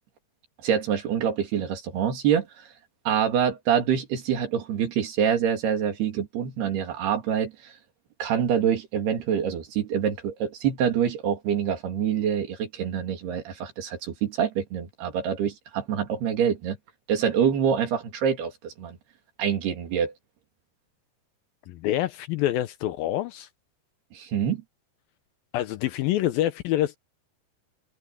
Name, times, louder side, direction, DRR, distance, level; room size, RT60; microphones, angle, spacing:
voice 1, 0.6-2.7 3.1-7.7 8.2-16.8 17.1-19.0 19.4-20.1 24.1-24.6, right 8 dB, 75° right, 4.8 m, -26 dB
voice 2, 21.7-23.5 25.5-27.0, left 14 dB, 75° left, 2.3 m, -26 dB
omnidirectional pair, 4.7 m